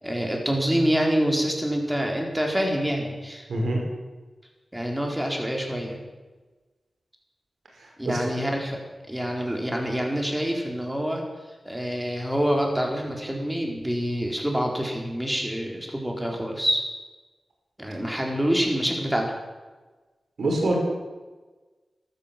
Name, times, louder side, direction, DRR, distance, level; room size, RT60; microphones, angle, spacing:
voice 1, 0.0-3.5 4.7-6.0 8.0-8.8 9.1-11.2 11.6-16.8 17.8-19.3, equal, 10° right, 1 dB, 4.3 m, -26 dB
voice 2, 3.5-3.8 7.8-8.3 20.4-20.8, right 1 dB, 80° right, 0 dB, 5.1 m, -25 dB
14.0 x 13.0 x 7.6 m, 1.3 s
cardioid pair, 60°, 0 cm